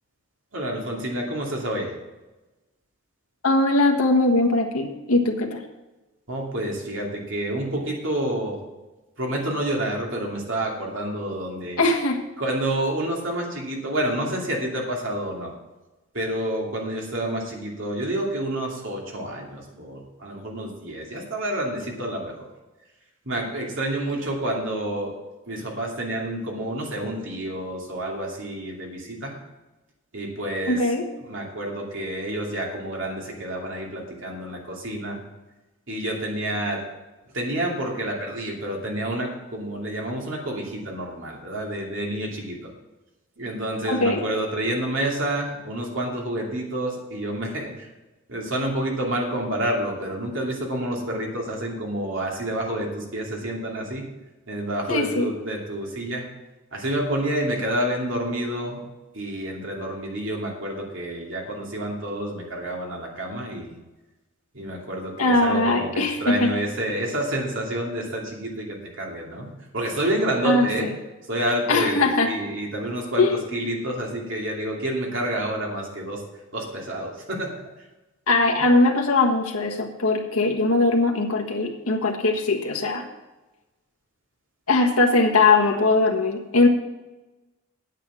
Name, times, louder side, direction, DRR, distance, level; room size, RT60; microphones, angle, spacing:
voice 1, 0.5-1.9 6.3-8.6 9.2-11.8 12.4-15.5 16.1-22.3 23.2-25.2 25.5-29.3 30.1-35.2 35.9-36.8 37.3-42.7 43.4-47.9 48.3-54.1 54.5-56.2 56.7-58.8 59.1-63.8 64.5-70.9 71.3-76.2 76.5-77.5, right 1 dB, 60° right, -1 dB, 2.7 m, -29 dB
voice 2, 3.4-5.6 11.8-12.2 30.7-31.1 43.9-44.2 54.9-55.3 65.2-66.5 70.4-70.7 71.7-72.3 73.2-73.3 78.3-83.0 84.7-86.7, left 2 dB, 85° left, 2 dB, 1.5 m, -20 dB
9.1 x 8.4 x 6.3 m, 1.1 s
head